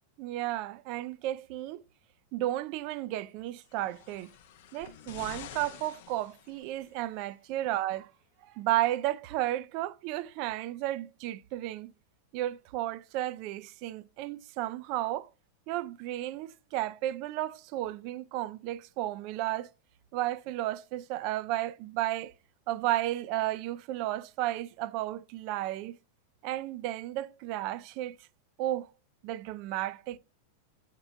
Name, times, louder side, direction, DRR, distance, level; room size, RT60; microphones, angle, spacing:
voice 1, 0.2-1.8 2.3-4.3 4.7-8.1 8.4-11.9 12.3-15.3 15.7-19.7 20.1-22.3 22.7-26.0 26.4-28.2 28.6-28.9 29.2-30.2, right 14 dB, 45° right, 0.4 m, -33 dB
sound 1, 3.6-7.0 7.9-8.0, left 10 dB, 50° left, 0.6 m, -48 dB
8.7 x 3.7 x 4.2 m
figure-of-eight pair, 90°, 0 cm